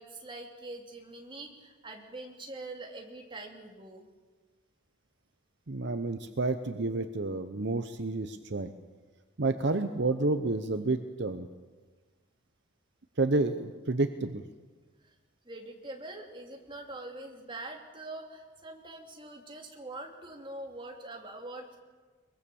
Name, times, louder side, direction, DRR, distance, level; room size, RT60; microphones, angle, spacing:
voice 1, 0.0-4.0 15.0-15.1 15.4-21.8, right 2 dB, 25° right, 2 dB, 2.8 m, -44 dB
voice 2, 5.7-8.7 9.4-11.5 13.2-14.4, right 2 dB, 55° right, 9 dB, 0.8 m, -30 dB
22.5 x 22.5 x 7.1 m, 1.4 s
head